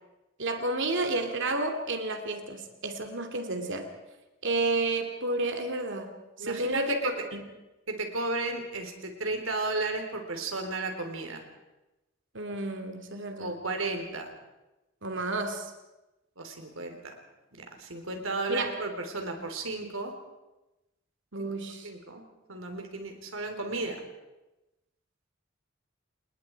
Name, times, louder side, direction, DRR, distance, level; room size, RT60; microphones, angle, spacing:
voice 1, 0.4-3.9 4.4-6.1 6.4-7.4 12.3-13.5 15.0-15.7 18.5-18.7 21.3-21.9, right 2 dB, 65° right, 6 dB, 2.7 m, -31 dB
voice 2, 6.4-7.1 7.9-11.4 13.4-14.3 16.4-17.0 17.8-20.1 21.4-21.5 21.8-22.2 22.5-24.0, right 3 dB, 90° right, 4 dB, 3.9 m, -33 dB
29.0 x 20.0 x 4.8 m, 1.0 s
head